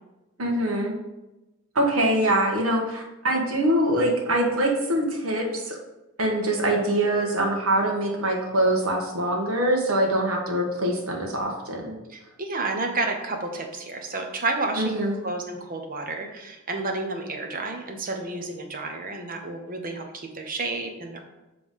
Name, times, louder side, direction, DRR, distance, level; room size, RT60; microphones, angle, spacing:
voice 1, 0.4-0.9 1.7-5.7 6.2-11.9 14.8-15.2, right 1 dB, 80° right, 1 dB, 1.4 m, -24 dB
voice 2, 12.1-21.3, right 3 dB, 45° right, 4 dB, 1.0 m, -31 dB
7.5 x 3.4 x 5.3 m, 1.0 s
head